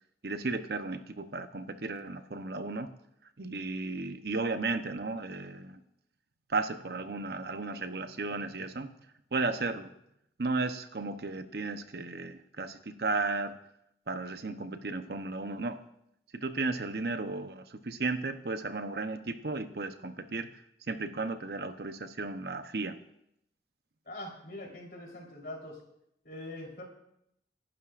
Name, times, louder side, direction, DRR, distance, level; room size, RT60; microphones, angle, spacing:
voice 1, 0.2-2.9 3.4-5.8 6.5-8.9 9.3-9.9 10.4-13.5 14.1-15.8 16.3-20.5 20.9-23.0, right 3 dB, 65° right, 8 dB, 0.8 m, -34 dB
voice 2, 24.1-25.8 26.2-26.9, left 1 dB, 55° left, -1 dB, 3.8 m, -43 dB
28.0 x 12.0 x 2.5 m, 0.78 s
head